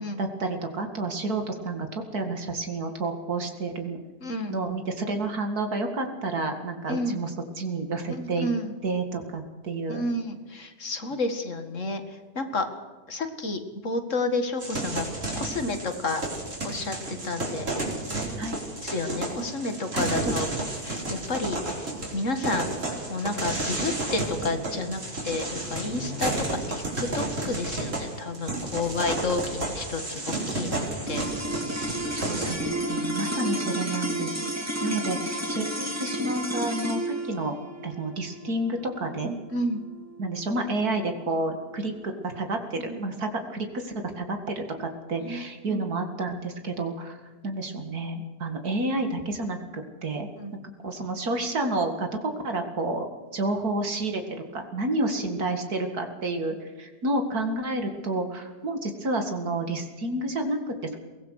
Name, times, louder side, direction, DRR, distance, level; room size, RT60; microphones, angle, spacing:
voice 1, 0.2-4.0 4.5-7.3 7.6-8.5 8.8-10.0 18.4-18.6 19.9-20.1 32.2-34.3 34.8-37.6 37.8-39.3 40.2-50.3 50.8-53.1 53.3-61.0, right 2 dB, 70° right, 5 dB, 2.6 m, -30 dB
voice 2, 4.2-4.6 6.9-7.2 8.1-8.7 9.9-12.7 13.1-15.0 15.4-16.2 16.6-17.7 18.8-20.5 20.8-22.7 23.1-31.4 39.2-39.8 42.8-43.0 45.2-45.8 50.4-50.5, left 2 dB, 50° left, 7 dB, 2.3 m, -31 dB
sound 1, 14.6-32.6, right 2 dB, 50° right, 4.8 m, -32 dB
sound 2, 31.0-41.5, right 1 dB, 10° right, 2.2 m, -32 dB
23.0 x 18.0 x 6.5 m, 1.4 s
omnidirectional pair, 1.7 m